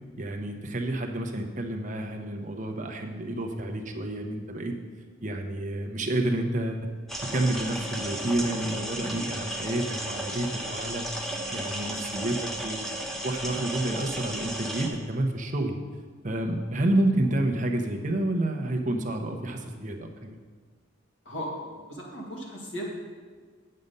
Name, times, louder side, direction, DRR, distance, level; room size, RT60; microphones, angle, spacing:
voice 1, 0.2-4.7 5.2-6.9 7.3-11.1 11.5-12.9 13.2-15.8 16.2-20.4, right 1 dB, 40° right, 4 dB, 0.9 m, -29 dB
sound 1, 7.1-14.9, right 1 dB, ahead, 0.8 m, -34 dB
voice 2, 21.3-22.8, equal, 65° left, -2 dB, 1.9 m, -37 dB
8.6 x 6.6 x 5.4 m, 1.5 s
head